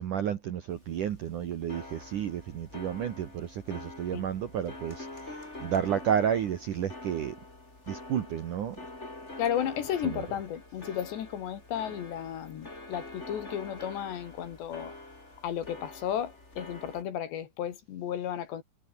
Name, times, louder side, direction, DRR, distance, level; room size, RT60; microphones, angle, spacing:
voice 1, 0.0-7.4 7.9-8.8 10.1-10.2, right 9 dB, 60° right, 2.1 m, -31 dB
sound 1, 0.7-17.0, left 2 dB, 15° left, 4.5 m, -46 dB
voice 2, 9.4-14.9 15.4-18.6, left 10 dB, 65° left, 4.2 m, -34 dB
omnidirectional pair, 5.6 m